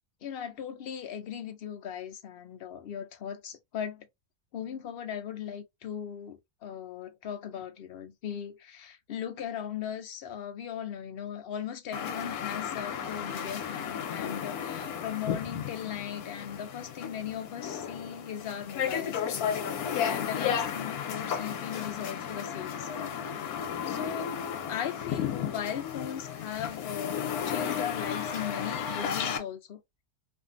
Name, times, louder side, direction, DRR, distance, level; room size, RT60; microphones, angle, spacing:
voice 1, 0.2-4.1 4.5-23.2 23.9-24.4 24.7-29.8, left 9 dB, 65° left, 0.6 m, -38 dB
sound 1, 11.9-29.4, left 8 dB, 85° left, 1.2 m, -34 dB
2.7 x 2.5 x 2.5 m
omnidirectional pair, 1.5 m